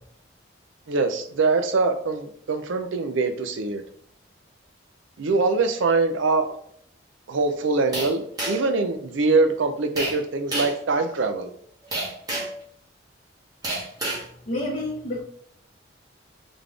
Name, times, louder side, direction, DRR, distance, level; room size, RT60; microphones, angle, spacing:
voice 1, 0.9-3.8 5.2-6.5 7.3-11.5, right 3 dB, 80° right, 6 dB, 0.5 m, -23 dB
sound 1, 7.9-8.8 10.0-10.2 10.5-10.8 11.9-12.6 13.6-14.3, right 1 dB, 20° right, 1.4 m, -29 dB
voice 2, 14.5-15.2, left 1 dB, 40° left, -5 dB, 0.9 m, -28 dB
3.9 x 3.4 x 3.2 m, 0.64 s
head